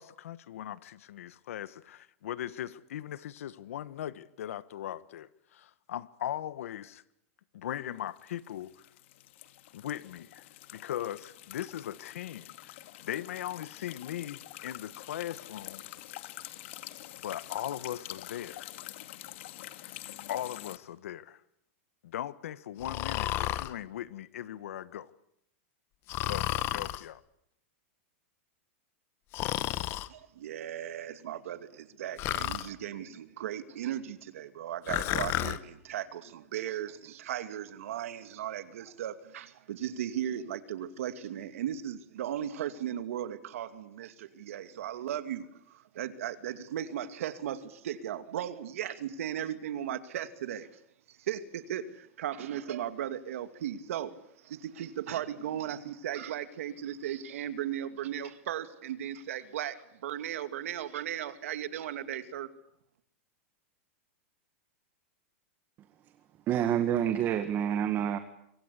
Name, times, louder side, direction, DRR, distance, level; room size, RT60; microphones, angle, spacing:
voice 1, 0.0-7.0 7.5-8.7 9.7-10.5 10.7-15.8 17.2-18.7 20.3-21.4 22.0-25.1 26.2-27.2, left 11 dB, 80° left, 1.4 m, -39 dB
sound 1, 8.0-20.8, left 15 dB, 60° left, 2.1 m, -46 dB
Breathing, 22.8-23.7 26.1-27.0 29.3-30.1 32.2-32.7 34.9-35.6, left 15 dB, 35° left, 1.1 m, -31 dB
voice 2, 30.1-50.7 51.1-62.5, right 10 dB, 80° right, 2.5 m, -37 dB
voice 3, 66.5-68.2, right 10 dB, 30° right, 1.7 m, -28 dB
27.0 x 24.0 x 8.4 m
supercardioid pair, 155°, 7 cm